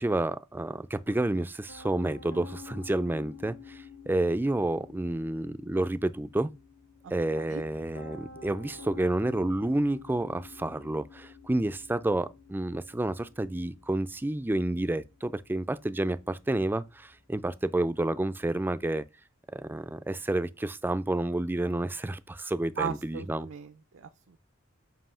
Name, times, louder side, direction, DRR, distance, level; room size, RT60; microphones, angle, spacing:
voice 1, 0.0-6.5 7.1-19.0 19.5-23.5, right 1 dB, 10° right, 0.3 m, -30 dB
Piano, 1.7-18.8, left 5 dB, 85° left, 1.7 m, -50 dB
voice 2, 22.8-24.4, right 7 dB, 70° right, 0.5 m, -37 dB
7.6 x 2.7 x 5.5 m
head